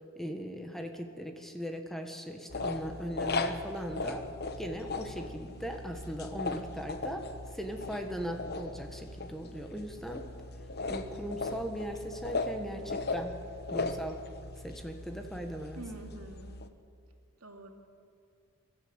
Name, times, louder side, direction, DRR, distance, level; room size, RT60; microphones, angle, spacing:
voice 1, 0.1-4.3 4.6-10.3 10.9-13.4 13.7-14.2 14.6-15.8, equal, ahead, 4 dB, 1.4 m, -39 dB
sound 1, 2.5-16.7, left 3 dB, 50° left, 1.0 m, -38 dB
voice 2, 15.8-16.7 17.4-17.7, right 2 dB, 80° right, 2 dB, 2.7 m, -46 dB
23.0 x 13.5 x 8.8 m, 2.3 s
head